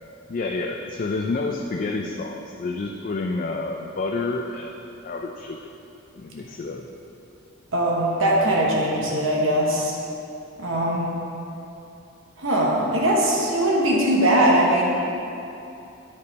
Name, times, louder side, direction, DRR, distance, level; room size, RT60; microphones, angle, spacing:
voice 1, 0.3-5.6 6.1-6.9, left 3 dB, 40° left, 2 dB, 0.3 m, -29 dB
voice 2, 7.7-10.0 10.6-11.1 12.4-14.9, right 1 dB, 70° right, -3 dB, 1.1 m, -21 dB
8.5 x 5.3 x 4.1 m, 2.8 s
head